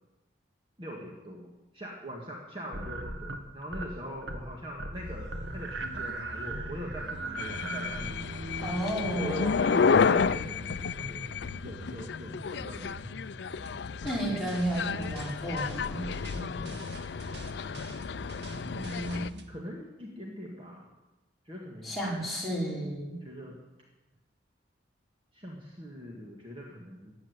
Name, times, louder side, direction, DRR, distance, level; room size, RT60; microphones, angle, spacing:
voice 1, 0.8-8.5 9.2-11.3 11.6-13.2 18.7-20.9 21.5-22.0 23.2-23.6 25.3-27.1, equal, 30° right, -1 dB, 1.9 m, -41 dB
sound 1, 2.7-3.9 4.2-4.5 4.8-9.5, right 2 dB, 85° right, 1.6 m, -38 dB
sound 2, 4.9-19.4, equal, 65° right, 1.9 m, -44 dB
sound 3, 7.4-19.3, left 5 dB, 65° left, 0.4 m, -31 dB
voice 2, 8.6-9.5 14.0-16.2 21.8-23.2, right 1 dB, ahead, -6 dB, 5.2 m, -32 dB
15.0 x 8.7 x 9.6 m, 1.1 s
head